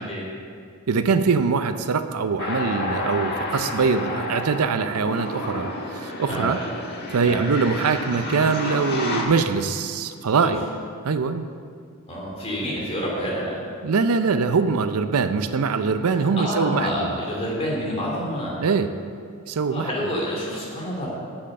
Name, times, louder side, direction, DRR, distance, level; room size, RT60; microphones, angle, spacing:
voice 1, 0.9-6.6 7.1-10.6 11.0-11.5 13.8-17.1 18.6-18.9 19.5-19.9, right 5 dB, 80° right, 10 dB, 0.5 m, -23 dB
sound 1, 2.4-9.2, left 2 dB, 45° left, 1.5 m, -30 dB
voice 2, 12.1-13.6 16.1-18.6 19.7-21.1, equal, 30° left, -4 dB, 2.6 m, -28 dB
8.7 x 7.5 x 6.6 m, 2.2 s
head